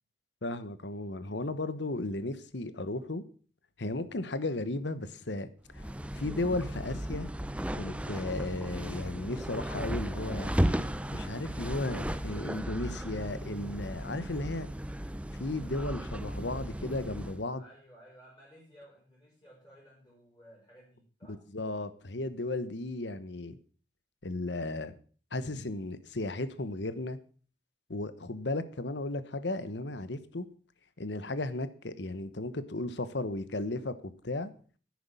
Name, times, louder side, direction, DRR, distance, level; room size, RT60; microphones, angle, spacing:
voice 1, 0.4-3.2 3.8-5.5 5.7-5.8 6.2-7.3 7.7-10.5 11.1-14.7 15.4-17.6 21.3-23.6 24.2-24.9 25.3-27.2 27.9-30.5 31.0-34.5, left 2 dB, 75° left, 14 dB, 1.1 m, -35 dB
sound 1, 5.7-17.4, equal, 5° right, 0.5 m, -35 dB
voice 2, 17.6-21.4, equal, 20° left, -7 dB, 5.4 m, -56 dB
10.5 x 9.6 x 7.0 m, 0.42 s
head